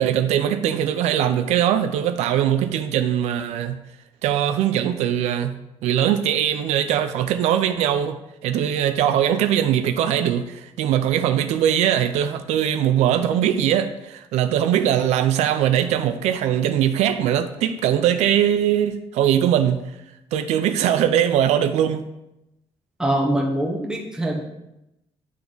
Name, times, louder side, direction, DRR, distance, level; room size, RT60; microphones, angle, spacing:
voice 1, 0.0-3.8 4.2-5.6 5.8-8.2 8.4-19.8 20.3-22.0, right 10 dB, 90° right, 0.5 m, -21 dB
voice 2, 23.0-24.4, right 1 dB, 5° right, 1.2 m, -23 dB
10.5 x 3.5 x 3.9 m
cardioid pair, 135°, 11 cm